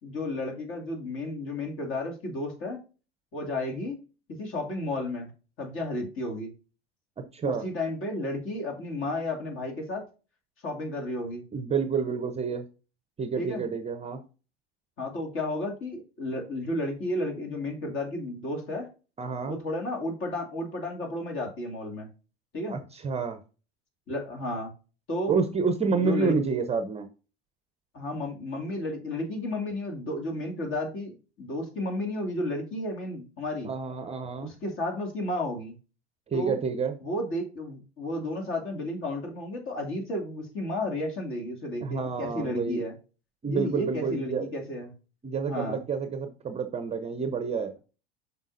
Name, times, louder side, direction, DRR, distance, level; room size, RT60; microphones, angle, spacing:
voice 1, 0.0-2.8 3.3-4.0 4.3-5.3 5.6-6.5 7.4-10.0 10.6-11.4 13.4-13.6 15.0-18.9 19.5-22.1 22.5-22.8 24.1-24.7 25.1-25.4 26.0-26.4 27.9-33.7 34.4-35.8 36.3-36.6 37.0-43.0 43.5-44.9 45.5-45.8, left 1 dB, 40° left, 3 dB, 2.4 m, -32 dB
voice 2, 7.3-7.7 11.5-12.7 13.2-14.2 19.2-19.6 22.7-23.4 25.3-27.1 33.6-34.5 36.3-36.9 41.8-42.8 43.4-44.5 45.2-47.7, right 5 dB, 20° right, 9 dB, 0.7 m, -29 dB
7.2 x 5.8 x 2.6 m, 0.34 s
hypercardioid pair, 85°, 32 cm